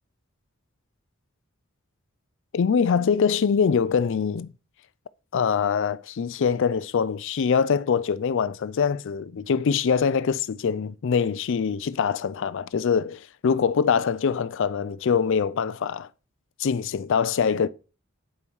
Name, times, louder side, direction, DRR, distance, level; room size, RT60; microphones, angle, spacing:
voice 1, 2.5-4.5 5.3-16.1 16.6-17.7, left 6 dB, 60° left, 0.4 m, -23 dB
8.3 x 5.3 x 4.6 m
head